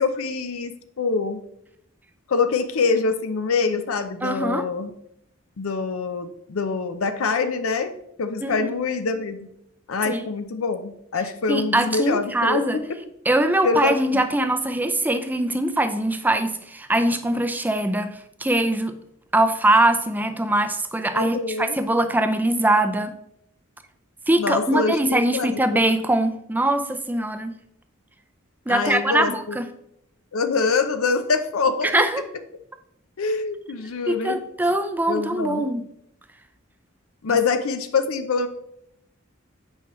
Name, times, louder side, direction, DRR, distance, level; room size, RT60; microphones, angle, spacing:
voice 1, 0.0-1.4 2.3-4.9 5.6-7.9 8.2-9.5 9.9-12.6 13.6-14.3 21.1-21.7 24.4-25.8 28.7-29.6 30.3-31.9 33.2-34.4 35.1-35.6 37.2-38.5, left 4 dB, 90° left, 9 dB, 0.6 m, -25 dB
voice 2, 4.2-4.7 8.4-8.7 10.1-10.3 11.5-12.8 13.3-19.0 19.3-23.1 24.3-27.5 28.7-29.6 31.8-32.2 34.1-35.8 37.3-37.4, right 1 dB, 10° right, 8 dB, 0.4 m, -22 dB
8.4 x 4.8 x 3.1 m, 0.76 s
head